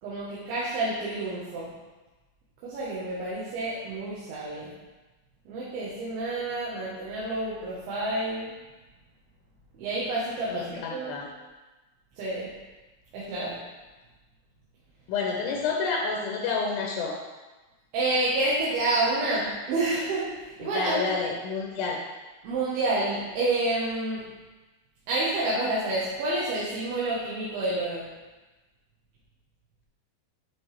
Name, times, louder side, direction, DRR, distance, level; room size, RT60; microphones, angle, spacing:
voice 1, 0.0-1.7 2.6-4.7 5.5-8.5 9.8-11.2 12.2-12.5 13.1-13.6 17.9-21.0 22.4-24.2 25.1-28.1, right 2 dB, 80° right, -8 dB, 3.2 m, -29 dB
voice 2, 10.5-11.3 15.1-17.2 20.6-22.0, left 4 dB, 80° left, -1 dB, 2.5 m, -29 dB
8.7 x 4.9 x 3.3 m, 1.2 s
omnidirectional pair, 4.4 m